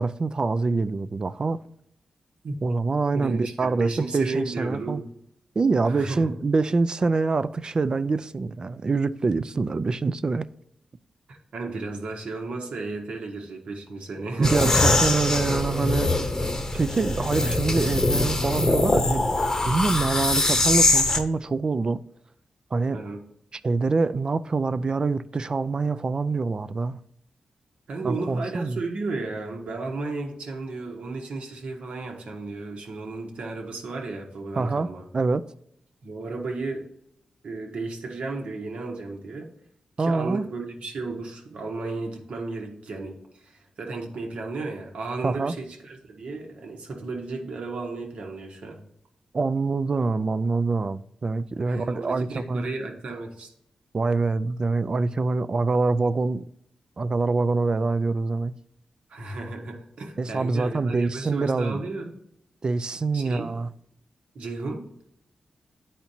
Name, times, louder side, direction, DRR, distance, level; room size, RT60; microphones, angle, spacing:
voice 1, 0.0-1.6 2.6-5.0 5.6-10.5 14.4-16.2 16.7-19.2 19.7-22.0 22.7-23.0 23.5-27.0 28.0-28.8 34.6-34.9 35.1-35.5 40.0-40.5 45.2-45.5 49.3-52.7 53.9-56.4 57.0-58.5 60.2-61.8 62.6-63.7, right 3 dB, 40° right, 0.3 m, -25 dB
voice 2, 3.1-5.0 5.8-6.3 11.3-14.7 22.9-23.2 27.9-35.0 36.0-36.8 37.4-39.5 40.0-48.8 51.7-53.5 59.1-62.2 63.1-63.6 64.3-64.8, right 3 dB, 75° right, 1.3 m, -34 dB
sound 1, 14.4-21.2, left 2 dB, 30° left, 0.8 m, -23 dB
10.5 x 4.3 x 2.8 m
cardioid pair, 70°, 2 cm